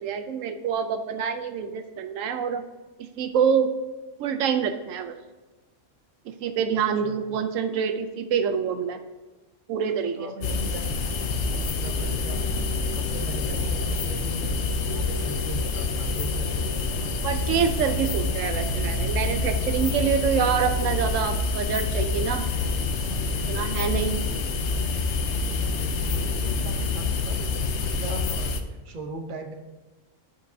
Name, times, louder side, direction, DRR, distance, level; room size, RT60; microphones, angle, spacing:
voice 1, 0.0-2.6 3.2-3.7 4.2-5.2 6.3-9.0 9.7-10.3 17.2-22.5 23.5-24.2, right 7 dB, 85° right, 8 dB, 1.0 m, -26 dB
voice 2, 7.0-7.3 10.1-11.1 11.5-12.4 12.8-14.6 14.9-17.1 23.6-24.6 25.6-29.5, right 2 dB, 45° right, 4 dB, 0.9 m, -40 dB
sound 1, 10.4-28.6, left 3 dB, 70° left, 0.9 m, -27 dB
11.5 x 4.5 x 2.7 m, 1.2 s
omnidirectional pair, 1.3 m